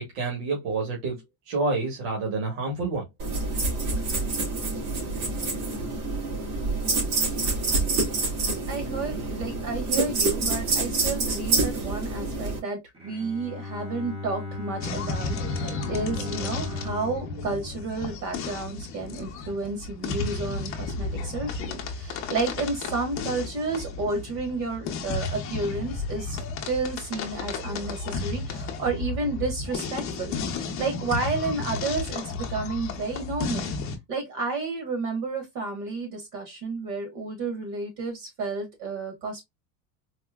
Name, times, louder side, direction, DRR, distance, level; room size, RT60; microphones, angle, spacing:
voice 1, 0.0-3.0, right 3 dB, 60° right, 1.7 m, -28 dB
sound 1, 3.2-12.6, right 3 dB, 90° right, 2.4 m, -27 dB
voice 2, 8.7-33.7 34.1-39.4, right 3 dB, 45° right, 1.3 m, -31 dB
Bowed string instrument, 12.9-18.9, left 3 dB, 15° right, 0.8 m, -37 dB
sound 2, 14.8-34.0, left 4 dB, 30° left, 0.7 m, -33 dB
4.3 x 2.7 x 2.3 m
cardioid pair, 180°, 42 cm